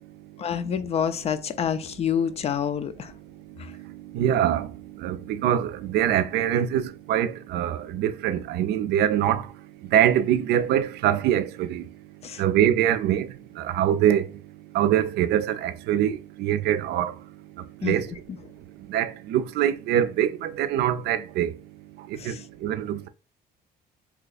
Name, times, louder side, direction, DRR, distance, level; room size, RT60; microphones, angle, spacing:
voice 1, 0.4-3.1 3.6-3.7 12.2-12.4 17.8-18.2 22.2-22.4, left 8 dB, 35° left, 0.4 m, -28 dB
voice 2, 3.7-9.5 9.9-11.8 12.4-13.3 13.6-14.3 14.7-17.1 17.8-18.1 18.9-21.6 22.1-22.4 22.6-23.1, right 10 dB, 75° right, 0.5 m, -24 dB
2.8 x 2.4 x 4.0 m
cardioid pair, 110°, 17 cm